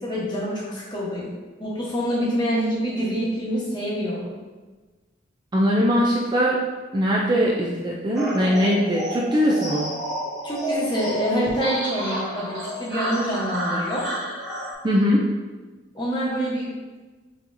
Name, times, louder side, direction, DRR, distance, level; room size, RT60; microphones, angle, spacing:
voice 1, 0.0-1.3 1.6-4.4 10.4-14.1 15.9-16.7, equal, 20° left, -5 dB, 1.0 m, -26 dB
voice 2, 5.5-6.6 6.9-9.9 14.8-15.3, equal, 20° right, -4 dB, 0.3 m, -21 dB
sound 1, 8.1-14.7, equal, ahead, 1.4 m, -30 dB
5.8 x 3.0 x 2.6 m, 1.3 s
head